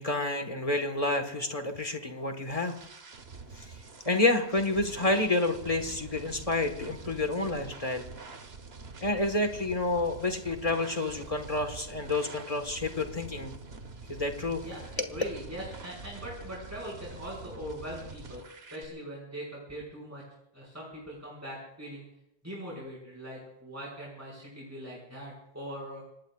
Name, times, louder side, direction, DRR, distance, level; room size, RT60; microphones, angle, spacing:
voice 1, 0.0-2.8 3.5-3.8 4.0-8.0 9.0-13.5 14.1-14.6, left 2 dB, 30° left, 6 dB, 1.6 m, -29 dB
sound 1, 1.9-18.9, right 4 dB, 60° right, 1.5 m, -46 dB
voice 2, 14.6-18.4 18.7-20.2 20.5-22.0 22.4-26.0, equal, 15° right, -5 dB, 5.5 m, -41 dB
26.0 x 20.0 x 2.5 m, 0.83 s
omnidirectional pair, 1.2 m